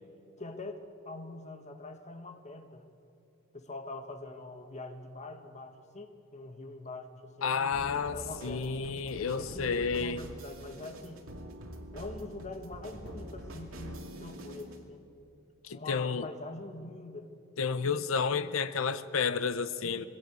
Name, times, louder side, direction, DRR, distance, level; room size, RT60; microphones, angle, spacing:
voice 1, 0.4-0.8 1.0-2.8 3.5-8.7 9.2-11.2 11.9-15.0 15.7-17.3 19.8-20.1, left 2 dB, 35° left, 6 dB, 1.6 m, -44 dB
voice 2, 7.4-8.2 8.4-10.2 15.6-16.3 17.6-20.0, left 5 dB, 75° left, 13 dB, 0.7 m, -31 dB
sound 1, 7.7-14.8, right 1 dB, 80° right, 2.3 m, -45 dB
21.5 x 16.5 x 8.2 m, 2.5 s
head